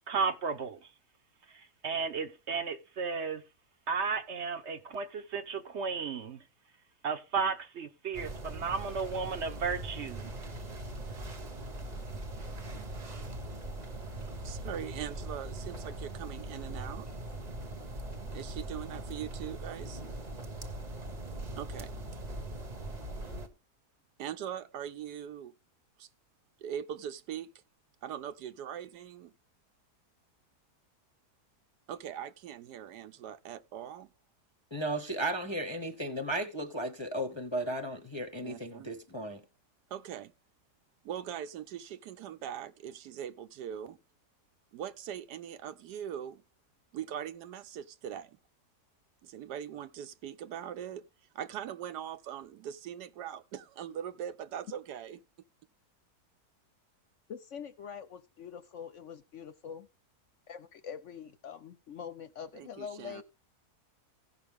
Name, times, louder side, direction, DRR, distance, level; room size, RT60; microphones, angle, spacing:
voice 1, 0.1-0.9 1.5-3.4 3.9-6.4 7.0-10.2, right 5 dB, 55° right, 0.9 m, -34 dB
sound 1, 8.1-23.5, right 1 dB, 30° right, 1.0 m, -41 dB
voice 2, 14.4-17.1 18.3-20.0 21.6-21.9 24.2-25.5 26.0-26.1 26.6-27.5 28.0-29.3 31.9-34.1 38.4-38.9 39.9-40.3 41.0-44.0 44.7-46.4 46.9-48.4 49.2-51.1 51.3-55.2 62.5-63.2, right 9 dB, 90° right, 1.3 m, -41 dB
voice 3, 34.7-39.4, right 1 dB, 25° left, 0.6 m, -35 dB
voice 4, 57.3-59.9 60.5-63.2, left 7 dB, 65° left, 0.8 m, -44 dB
16.5 x 5.8 x 3.5 m
omnidirectional pair, 1.7 m